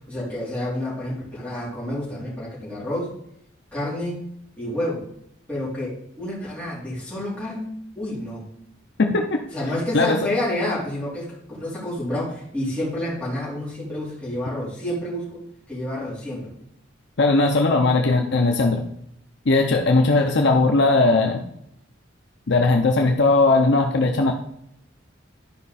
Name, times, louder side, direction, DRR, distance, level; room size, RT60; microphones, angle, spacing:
voice 1, 0.1-3.1 3.7-4.3 4.6-5.1 5.5-8.5 9.5-15.4 15.7-16.5, left 1 dB, 5° left, -9 dB, 3.8 m, -29 dB
voice 2, 9.0-9.4 9.9-10.2 17.2-18.8 19.5-21.4 22.5-24.3, left 3 dB, 60° left, 3 dB, 0.7 m, -18 dB
12.0 x 5.1 x 4.2 m, 0.74 s
head